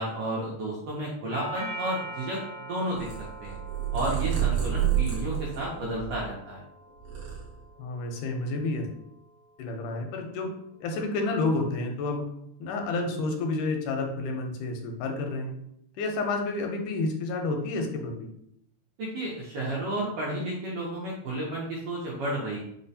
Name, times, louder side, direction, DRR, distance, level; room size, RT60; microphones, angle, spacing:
voice 1, 0.0-2.4 2.7-3.1 3.4-3.6 3.9-6.6 19.0-22.6, right 1 dB, 80° right, -5 dB, 1.3 m, -32 dB
Doorbell, 1.3-9.4, right 1 dB, 45° right, 1.0 m, -43 dB
Purr, 2.9-6.5 6.9-8.0, right 10 dB, 60° right, 1.4 m, -29 dB
voice 2, 7.8-8.9 9.6-10.5 10.8-12.2 12.6-15.5 16.0-18.3, left 3 dB, 85° left, 3 dB, 2.1 m, -30 dB
4.7 x 2.1 x 2.7 m, 0.73 s
omnidirectional pair, 3.5 m